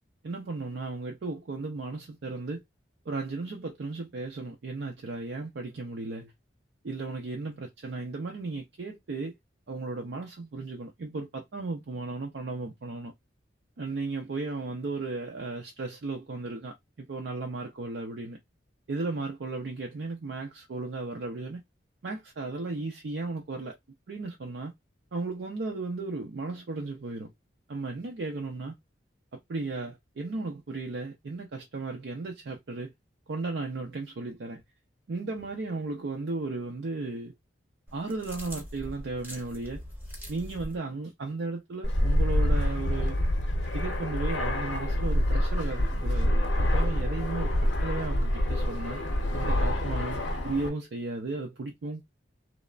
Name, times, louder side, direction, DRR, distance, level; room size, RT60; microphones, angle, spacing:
voice 1, 0.2-2.6 3.1-6.3 6.8-9.4 9.7-13.1 13.8-18.4 18.9-21.6 22.0-23.7 24.1-24.7 25.1-27.3 27.7-28.7 29.3-32.9 33.3-34.6 35.1-37.3 37.9-39.8 40.3-43.2 43.7-49.0 49.3-52.0, right 3 dB, 65° right, 0.4 m, -35 dB
sound 1, 37.9-40.8, equal, 10° right, 0.8 m, -42 dB
Fixed-wing aircraft airplane, 41.8-50.7, left 1 dB, 80° left, 0.7 m, -26 dB
3.1 x 2.0 x 2.3 m
head